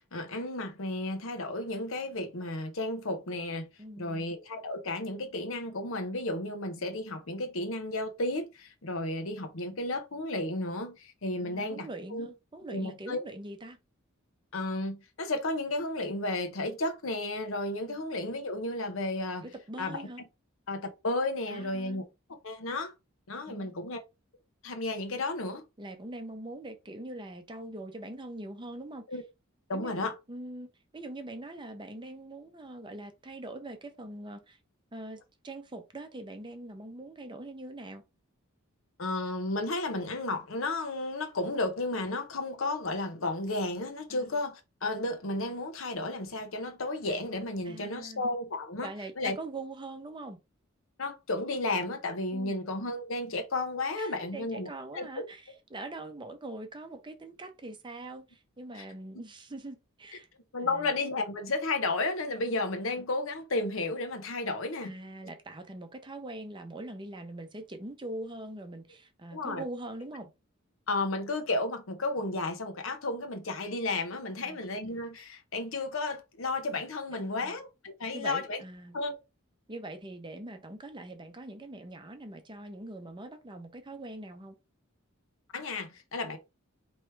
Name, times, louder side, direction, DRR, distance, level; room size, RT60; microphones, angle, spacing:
voice 1, 0.1-3.7 4.0-12.3 12.7-13.2 14.5-19.5 19.8-20.1 20.7-22.0 22.4-22.9 23.3-24.0 24.6-25.6 29.1-29.2 29.7-30.1 39.0-48.9 49.2-49.4 51.0-54.7 54.9-55.3 58.7-58.8 60.5-64.9 69.3-69.6 70.9-78.6 78.9-79.2 85.5-86.4, left 2 dB, 70° left, 0.9 m, -33 dB
voice 2, 3.8-4.3 11.4-13.8 17.9-18.0 19.4-20.2 21.5-22.0 23.5-23.7 25.8-29.1 29.7-34.6 34.9-38.0 44.1-44.3 47.6-48.2 48.8-50.4 52.3-52.6 54.0-60.3 60.6-60.9 62.5-62.6 64.8-70.3 74.4-74.6 77.1-77.6 78.1-79.0 79.7-84.5, right 2 dB, 20° right, 0.7 m, -43 dB
4.5 x 3.1 x 3.2 m
head